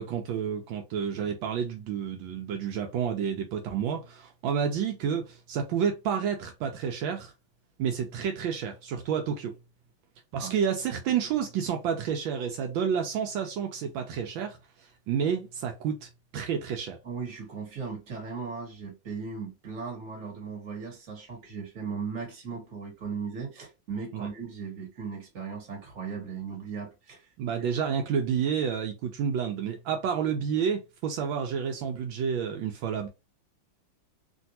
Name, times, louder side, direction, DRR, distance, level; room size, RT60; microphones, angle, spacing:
voice 1, 0.0-7.3 7.8-9.5 10.3-14.6 15.1-17.0 24.1-24.3 27.4-33.1, right 7 dB, 80° right, 1.4 m, -30 dB
voice 2, 17.0-27.7, right 5 dB, 45° right, 1.6 m, -37 dB
3.3 x 2.6 x 2.7 m
omnidirectional pair, 2.1 m